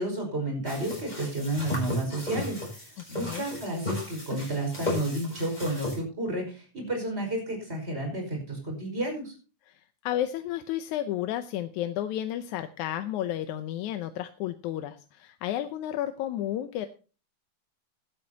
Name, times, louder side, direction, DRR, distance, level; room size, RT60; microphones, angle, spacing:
voice 1, 0.0-9.3, right 1 dB, 20° right, 3 dB, 5.5 m, -31 dB
sound 1, 0.6-6.0, left 2 dB, 15° left, 7.2 m, -35 dB
voice 2, 3.1-3.4 9.7-16.9, left 12 dB, 90° left, 10 dB, 2.2 m, -32 dB
16.0 x 12.0 x 2.9 m, 0.34 s
omnidirectional pair, 3.3 m